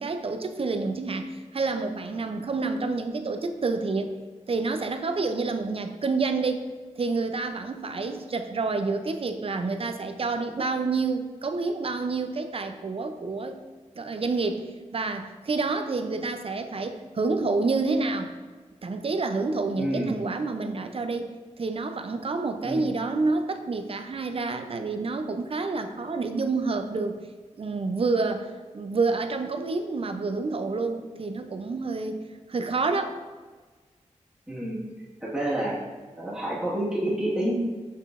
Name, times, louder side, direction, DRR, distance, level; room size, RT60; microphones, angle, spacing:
voice 1, 0.0-4.1 4.5-6.6 7.0-13.6 14.0-18.3 18.8-21.3 21.6-27.2 27.6-32.2 32.5-33.2, right 3 dB, 50° right, 7 dB, 0.4 m, -28 dB
voice 2, 19.8-20.1 22.6-22.9 34.5-34.8 35.2-35.8 36.2-37.5, right 1 dB, 5° right, -7 dB, 1.5 m, -28 dB
5.4 x 3.8 x 2.4 m, 1.4 s
cardioid pair, 55°, 13 cm